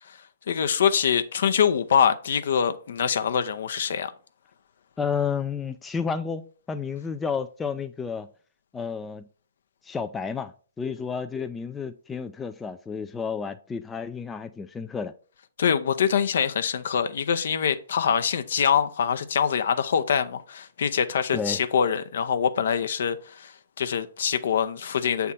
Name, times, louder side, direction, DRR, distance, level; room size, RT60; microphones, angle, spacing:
voice 1, 0.5-4.1 15.6-23.5 23.8-25.3, left 7 dB, 60° left, 0.6 m, -24 dB
voice 2, 5.0-8.3 8.7-9.3 9.8-15.1 21.3-21.6, left 6 dB, 10° left, 0.4 m, -31 dB
7.3 x 3.5 x 4.2 m
figure-of-eight pair, 125°, 0 cm